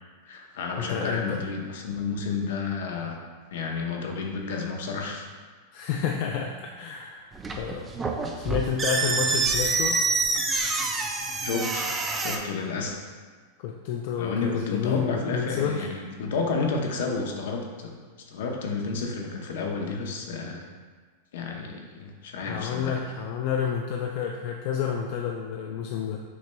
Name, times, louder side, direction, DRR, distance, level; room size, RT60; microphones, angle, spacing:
voice 1, 0.2-3.2 3.5-5.3 11.4-11.9 12.1-13.0 14.2-17.9 18.3-20.6 21.3-22.9, left 4 dB, 75° left, 1 dB, 0.7 m, -31 dB
voice 2, 0.8-1.4 5.7-7.3 7.6-7.9 8.4-10.0 13.6-15.9 22.5-26.2, left 7 dB, 55° left, 1 dB, 0.3 m, -29 dB
sound 1, 7.3-12.4, right 3 dB, 15° right, 0.4 m, -27 dB
5.9 x 3.1 x 2.2 m, 1.5 s
hypercardioid pair, 130°, 0 cm